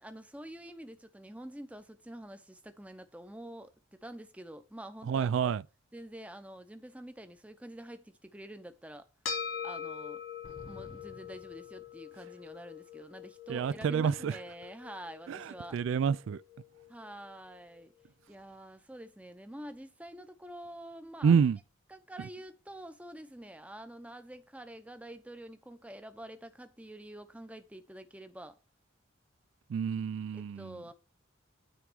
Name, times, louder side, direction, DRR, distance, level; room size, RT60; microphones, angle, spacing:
voice 1, 0.0-5.6 5.9-9.1 9.6-10.2 10.7-15.8 16.9-17.9 18.3-21.4 21.9-28.6 30.3-30.9, right 1 dB, 5° right, 0.6 m, -47 dB
voice 2, 5.1-5.6 13.5-14.3 15.3-15.4 15.7-16.4 21.2-21.6 29.7-30.7, right 6 dB, 70° right, 0.3 m, -28 dB
sound 1, 9.2-17.8, left 6 dB, 85° left, 2.4 m, -44 dB
sound 2, 10.4-12.4, left 1 dB, 65° left, 1.2 m, -53 dB
9.3 x 3.6 x 6.0 m
head